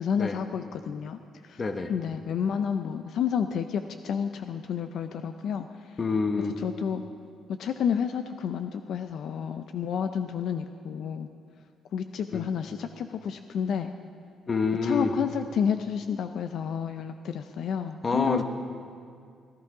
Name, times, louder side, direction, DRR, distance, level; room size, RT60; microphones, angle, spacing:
voice 1, 0.0-1.6 1.9-5.7 6.6-7.0 7.6-11.3 11.9-13.9 14.8-18.4, left 7 dB, 70° left, 8 dB, 0.5 m, -30 dB
voice 2, 1.6-1.9 6.0-6.6 12.3-12.5 14.5-15.2 18.0-18.4, left 4 dB, 35° left, 7 dB, 1.1 m, -27 dB
17.0 x 11.5 x 4.8 m, 2.3 s
cardioid pair, 90°, 0 cm